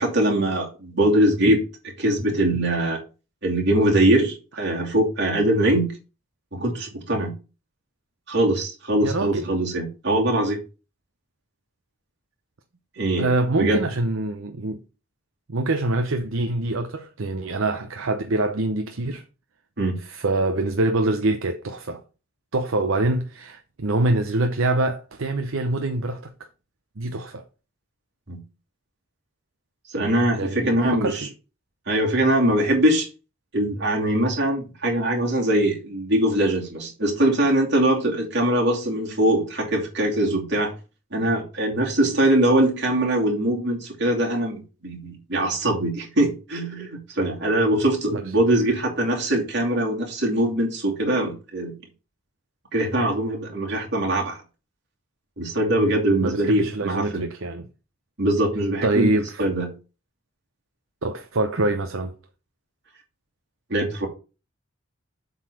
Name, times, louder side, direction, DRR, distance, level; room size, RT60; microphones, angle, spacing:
voice 1, 0.0-1.6 2.0-3.0 3.4-6.0 6.5-7.3 8.3-10.6 13.0-13.3 13.6-13.8 19.8-20.0 28.3-28.4 29.9-31.3 31.9-33.1 33.5-40.7 41.1-51.7 52.7-54.4 55.4-57.2 58.2-59.7 63.7-64.1, right 1 dB, 50° right, 2.7 m, -22 dB
voice 2, 9.0-9.6 13.2-14.8 15.5-19.2 20.0-22.0 22.5-26.3 27.0-27.4 30.3-31.2 48.1-48.2 56.2-57.7 58.8-59.4 61.0-62.1, right 2 dB, 70° right, 0.7 m, -25 dB
8.0 x 4.0 x 6.3 m
head